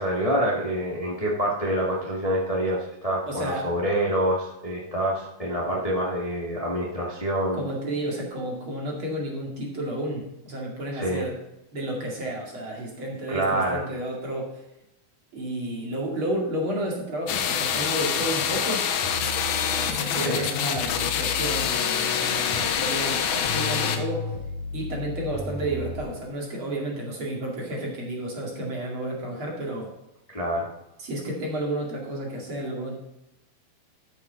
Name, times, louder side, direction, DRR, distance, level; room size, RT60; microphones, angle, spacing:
voice 1, 0.0-7.6 10.9-11.2 13.3-13.8 20.1-20.5 30.3-30.7, right 1 dB, 25° left, -4 dB, 0.8 m, -26 dB
voice 2, 3.3-3.7 7.5-11.3 11.7-14.6 15.3-18.8 19.7-24.2 24.7-29.9 31.0-33.0, right 1 dB, 40° right, -2 dB, 2.7 m, -31 dB
sound 1, 17.3-24.0, left 8 dB, 80° left, 2.9 m, -26 dB
sound 2, 19.0-26.2, left 3 dB, 55° left, 2.4 m, -35 dB
13.0 x 7.9 x 4.0 m, 0.89 s
omnidirectional pair, 4.4 m